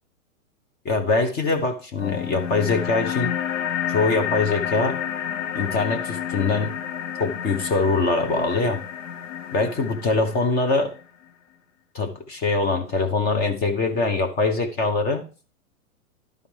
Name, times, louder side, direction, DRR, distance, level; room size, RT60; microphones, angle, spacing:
voice 1, 0.8-3.3 3.9-5.0 5.5-6.8 7.2-8.8 9.5-10.9 11.9-15.3, left 3 dB, 20° left, 6 dB, 0.8 m, -23 dB
sound 1, 2.0-11.0, left 9 dB, 60° left, 0.9 m, -30 dB
12.0 x 5.0 x 3.2 m, 0.36 s
hypercardioid pair, 135°, 43 cm